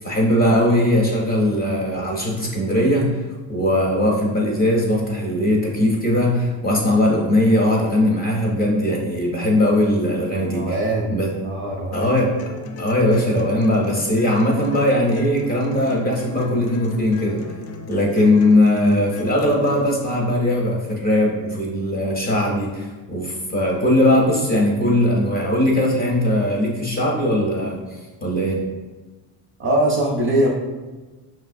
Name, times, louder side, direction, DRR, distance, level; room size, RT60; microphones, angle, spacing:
voice 1, 0.0-3.2 3.5-10.8 11.1-11.3 11.9-12.3 12.8-17.6 17.9-28.6, left 1 dB, 20° left, -2 dB, 0.5 m, -19 dB
voice 2, 10.5-11.1 11.4-12.1 29.6-30.5, right 1 dB, 30° right, -2 dB, 0.4 m, -21 dB
sound 1, 11.9-19.9, left 3 dB, 75° left, 0.6 m, -36 dB
5.5 x 3.0 x 2.5 m, 1.2 s
cardioid pair, 175°, 44 cm